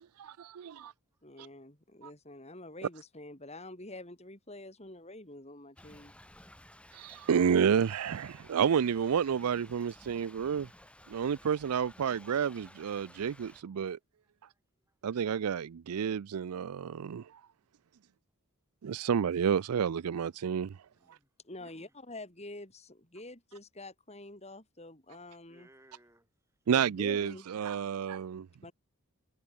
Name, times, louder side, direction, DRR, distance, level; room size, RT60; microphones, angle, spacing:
voice 1, 0.2-0.9 6.9-10.7 11.1-14.0 15.0-17.3 18.8-20.8 26.7-28.5, right 7 dB, 90° right, 0.4 m, -30 dB
voice 2, 1.2-6.1 21.4-25.7 26.7-27.5 28.6-28.7, left 2 dB, 30° left, 5.4 m, -47 dB
Thunder / Rain, 5.8-13.6, left 1 dB, 5° left, 5.1 m, -55 dB
voice 3, 20.9-21.3 21.6-21.9 25.5-26.3, right 1 dB, 10° right, 6.3 m, -62 dB
head